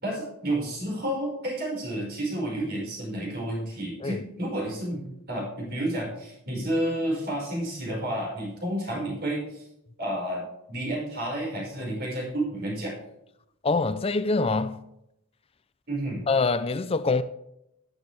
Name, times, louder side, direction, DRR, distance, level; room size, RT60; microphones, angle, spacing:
voice 1, 0.0-9.7 10.0-12.9 15.9-16.3, right 1 dB, 45° right, 5.5 m, -30 dB
voice 2, 13.6-14.8 16.3-17.2, left 3 dB, 25° left, 0.4 m, -24 dB
13.5 x 10.5 x 3.5 m
head